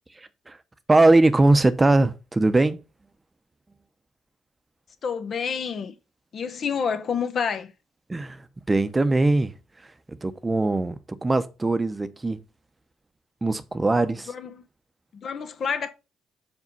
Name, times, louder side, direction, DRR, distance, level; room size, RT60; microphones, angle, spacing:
voice 1, 0.2-0.6 0.9-2.8 8.1-9.5 10.1-12.4 13.4-14.3, right 2 dB, 20° right, 0.7 m, -21 dB
voice 2, 5.0-5.9 6.3-7.7 14.3-14.6 15.1-15.9, left 6 dB, 55° left, 0.9 m, -28 dB
5.3 x 5.0 x 5.4 m
cardioid pair, 90°, 0 cm